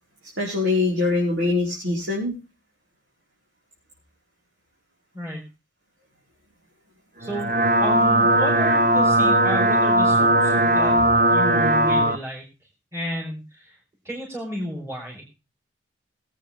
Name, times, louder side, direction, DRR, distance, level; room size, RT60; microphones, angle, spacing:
voice 1, 0.4-2.3 10.1-11.1, left 3 dB, 70° right, -3 dB, 4.7 m, -24 dB
voice 2, 7.2-7.5 7.8-10.9 11.3-12.4 12.9-13.7 14.0-15.2, equal, 15° right, -3 dB, 4.5 m, -32 dB
sound 1, 7.2-12.2, right 1 dB, 40° right, 0.9 m, -18 dB
23.0 x 8.7 x 3.5 m, 0.29 s
head